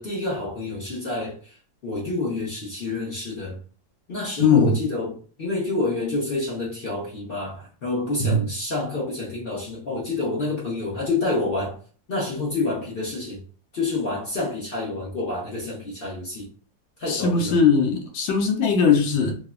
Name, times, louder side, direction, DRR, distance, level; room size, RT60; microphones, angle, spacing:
voice 1, 0.0-1.5 1.8-3.6 4.1-11.8 12.1-13.4 13.7-16.5 17.0-17.5, left 2 dB, 65° left, 0.5 m, -28 dB
voice 2, 4.4-4.7 8.3-8.4 17.1-19.4, left 5 dB, 80° left, 1.3 m, -19 dB
3.3 x 2.0 x 2.3 m
omnidirectional pair, 2.1 m